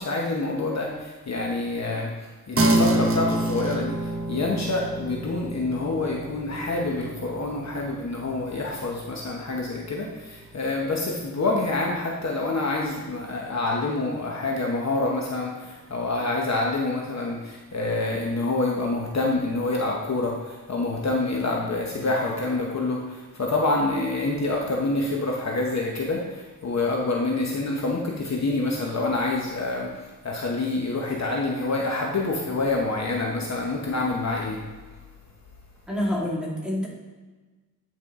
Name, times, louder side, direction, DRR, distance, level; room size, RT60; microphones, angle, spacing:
voice 1, 0.0-34.7, left 2 dB, 45° left, -1 dB, 1.0 m, -27 dB
sound 1, 2.6-12.3, right 1 dB, 35° right, 0.9 m, -29 dB
voice 2, 35.9-36.9, left 1 dB, ahead, -5 dB, 2.0 m, -27 dB
9.2 x 4.7 x 3.6 m, 1.2 s
wide cardioid pair, 105°, 37 cm